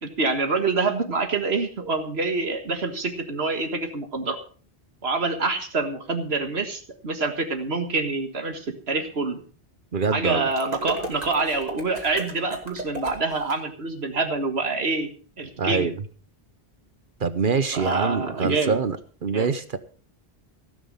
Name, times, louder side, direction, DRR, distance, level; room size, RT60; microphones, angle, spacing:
voice 1, 0.0-4.4 5.0-9.4 10.1-15.1 15.4-15.9 17.7-18.8 19.3-19.5, right 3 dB, 85° right, 6 dB, 1.9 m, -26 dB
voice 2, 9.9-10.5 15.6-16.0 17.2-19.0 19.2-19.8, right 5 dB, 55° right, 12 dB, 1.0 m, -24 dB
sound 1, 10.5-13.5, right 1 dB, 40° right, 3.0 m, -35 dB
16.5 x 9.5 x 5.5 m, 0.41 s
omnidirectional pair, 1.0 m